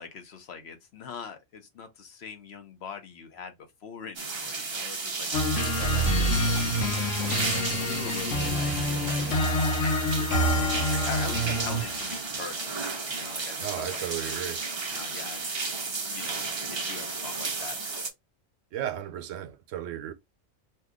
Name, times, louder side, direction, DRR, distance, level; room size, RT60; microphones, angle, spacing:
voice 1, 0.0-3.5 3.8-6.1 7.2-12.8 13.1-14.0 14.9-15.5 16.1-16.4 16.8-17.8, left 6 dB, 60° left, 0.9 m, -42 dB
sound 1, 4.2-18.1, right 4 dB, 40° right, 0.4 m, -33 dB
sound 2, 5.3-12.0, equal, 75° left, 1.1 m, -27 dB
voice 2, 13.6-14.7 18.7-20.1, right 11 dB, 85° right, 0.9 m, -34 dB
2.7 x 2.3 x 3.5 m
omnidirectional pair, 1.3 m